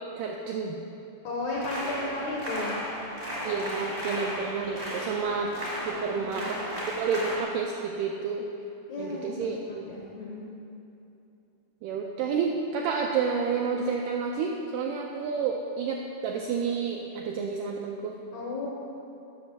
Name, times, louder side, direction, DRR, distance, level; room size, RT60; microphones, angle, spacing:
voice 1, 0.2-0.8 3.4-5.6 5.9-6.6 7.0-8.5 9.0-9.8 11.8-18.2, right 5 dB, 85° right, 1 dB, 1.9 m, -30 dB
voice 2, 1.2-2.8 5.9-6.6 8.9-9.6 9.8-10.4 18.3-18.7, left 2 dB, 75° left, -4 dB, 1.7 m, -34 dB
sound 1, 1.5-7.4, equal, 35° right, 0.6 m, -35 dB
7.8 x 6.0 x 6.7 m, 2.9 s
omnidirectional pair, 4.3 m